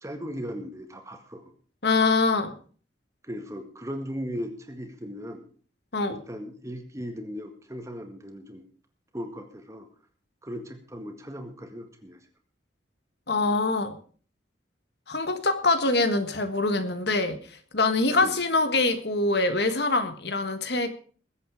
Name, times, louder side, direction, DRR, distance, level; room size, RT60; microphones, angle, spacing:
voice 1, 0.0-1.4 3.2-5.5 6.1-8.6 9.1-9.9 10.4-12.2 18.2-18.4, equal, 15° right, 6 dB, 1.9 m, -37 dB
voice 2, 1.8-2.5 5.9-6.2 13.3-14.0 15.1-17.4 17.7-20.9, left 3 dB, 60° left, 9 dB, 1.6 m, -24 dB
21.0 x 8.3 x 5.0 m, 0.43 s
head